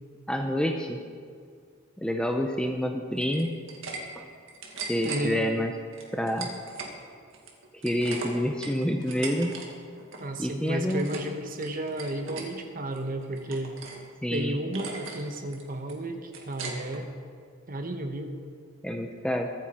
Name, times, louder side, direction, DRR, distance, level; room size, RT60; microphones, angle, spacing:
voice 1, 0.3-1.0 2.0-3.5 4.2-4.3 4.9-5.7 6.1-6.6 7.7-9.6 10.4-11.1 14.2-14.6 18.8-19.5, equal, 5° left, 3 dB, 0.7 m, -28 dB
sound 1, 3.2-4.0 4.3-5.2 5.9-6.9 7.3-9.7 9.9-10.3 10.6-11.3 11.6-12.5 12.9-14.0 14.3-14.4 14.7-15.2 15.5-17.0, right 4 dB, 65° right, 2.1 m, -39 dB
voice 2, 5.0-5.5 10.2-13.7 14.3-17.1 17.7-18.4, right 1 dB, 40° right, 6 dB, 1.2 m, -33 dB
23.5 x 9.3 x 4.4 m, 2.1 s
head